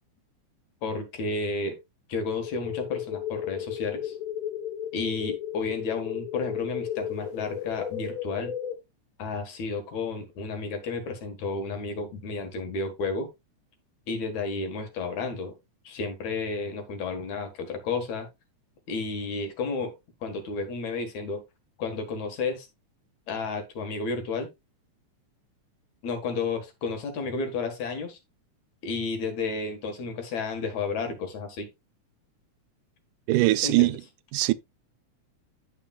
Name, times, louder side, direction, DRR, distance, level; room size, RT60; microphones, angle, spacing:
voice 1, 0.8-1.8 2.1-4.2 4.9-8.5 9.2-13.3 14.1-15.5 15.8-18.3 18.9-19.9 20.2-21.4 21.8-22.7 23.3-24.5 26.0-28.2 28.8-31.7 33.6-34.0, left 4 dB, 65° left, 2.9 m, -32 dB
sound 1, 2.3-8.7, left 10 dB, 50° left, 1.9 m, -34 dB
voice 2, 33.3-34.0 34.3-34.5, right 19 dB, 90° right, 2.1 m, -21 dB
14.5 x 5.1 x 2.3 m
omnidirectional pair, 3.5 m